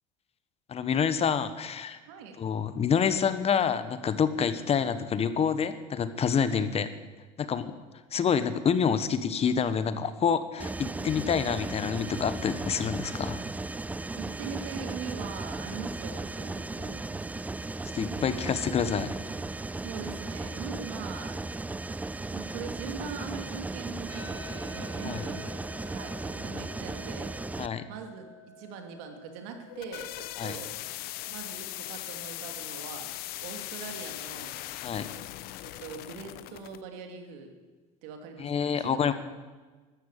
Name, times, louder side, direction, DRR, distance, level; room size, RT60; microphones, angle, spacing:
voice 1, 0.7-2.0 2.4-6.9 7.4-7.7 8.1-13.4 17.9-19.1 25.0-25.2 27.6-27.8 30.4-30.5 34.8-35.1 38.4-39.1, left 7 dB, 35° left, 12 dB, 1.2 m, -27 dB
voice 2, 2.1-2.4 6.4-6.8 14.1-17.1 19.8-21.4 22.3-25.5 25.8-27.4 27.9-30.7 31.3-33.1 33.4-34.6 35.6-37.5 38.0-38.9, right 6 dB, 75° right, 5 dB, 2.8 m, -42 dB
Mechanisms, 10.6-27.7, right 2 dB, 10° right, 0.4 m, -36 dB
sound 1, 24.1-33.1, left 2 dB, 80° left, 4.5 m, -51 dB
sound 2, 29.5-36.8, left 16 dB, 60° left, 0.8 m, -39 dB
13.5 x 12.0 x 8.3 m, 1.3 s
supercardioid pair, 90°, 18 cm